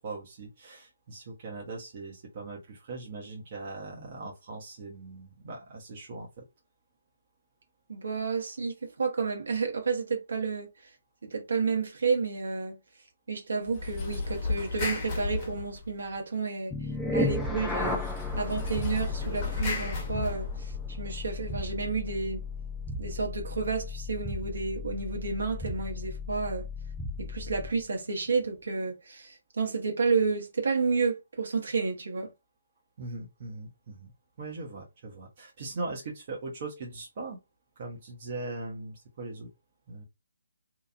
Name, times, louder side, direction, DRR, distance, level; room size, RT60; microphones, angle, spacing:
voice 1, 0.0-6.4 33.0-34.1 34.4-37.4 37.8-39.5 39.9-40.0, right 3 dB, 40° right, 0.9 m, -40 dB
voice 2, 7.9-10.7 11.2-12.8 13.3-16.8 17.1-18.1 18.4-22.4 23.0-26.7 27.2-32.3, right 4 dB, 65° right, 1.1 m, -31 dB
sound 1, 13.7-16.2 17.8-21.0, left 3 dB, 25° left, 1.2 m, -34 dB
sound 2, 16.7-27.8, left 2 dB, 5° left, 0.4 m, -35 dB
2.9 x 2.4 x 2.5 m
figure-of-eight pair, 140°, 0 cm